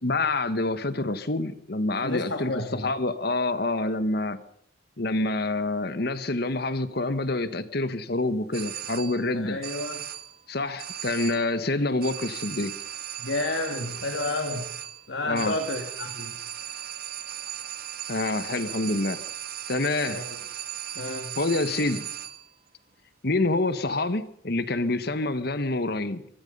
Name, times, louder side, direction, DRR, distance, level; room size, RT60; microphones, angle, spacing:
voice 1, 0.0-4.4 5.0-9.6 10.5-12.7 15.2-15.5 18.1-19.2 19.7-20.2 21.4-22.1 23.2-26.3, left 2 dB, 55° left, 13 dB, 1.3 m, -27 dB
voice 2, 2.0-2.9 9.3-10.0 13.2-14.7 15.1-16.3 20.1-20.4 21.0-21.3, left 2 dB, 70° left, 5 dB, 2.1 m, -31 dB
sound 1, 8.5-9.3 9.6-10.4 10.8-11.6 12.0-22.5, right 11 dB, 55° right, 1.7 m, -37 dB
24.5 x 20.0 x 5.4 m, 0.69 s
head